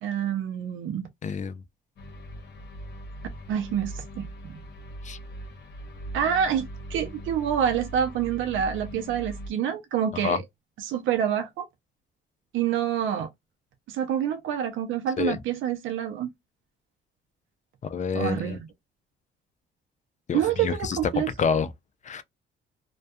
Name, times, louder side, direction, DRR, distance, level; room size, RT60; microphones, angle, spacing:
voice 1, 0.0-1.1 3.5-4.6 6.1-10.4 10.8-11.7 12.5-13.3 13.9-16.3 18.1-18.7 20.3-21.3, right 9 dB, 80° right, 0.5 m, -27 dB
voice 2, 1.2-1.6 5.0-5.2 10.2-10.4 15.2-15.4 17.8-18.6 20.3-21.7 22.0-22.2, left 6 dB, 40° left, 0.4 m, -28 dB
sound 1, 2.0-9.5, equal, 60° left, 0.8 m, -40 dB
2.2 x 2.2 x 2.6 m
cardioid pair, 90°, 20 cm